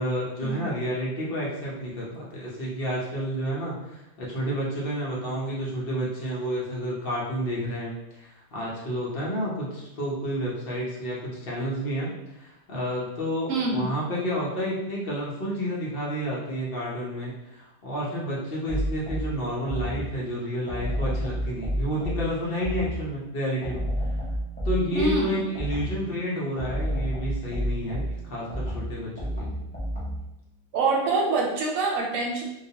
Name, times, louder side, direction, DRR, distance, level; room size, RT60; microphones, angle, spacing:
voice 1, 0.0-23.8 24.6-29.6, equal, 50° left, -5 dB, 0.7 m, -30 dB
voice 2, 13.5-13.8 24.9-25.5 30.7-32.4, right 3 dB, 80° right, 0 dB, 1.0 m, -25 dB
sound 1, 18.7-20.2 20.7-23.1 23.6-26.1 26.6-30.3, equal, 15° left, 0.3 m, -30 dB
2.3 x 2.3 x 2.7 m, 0.91 s
omnidirectional pair, 1.4 m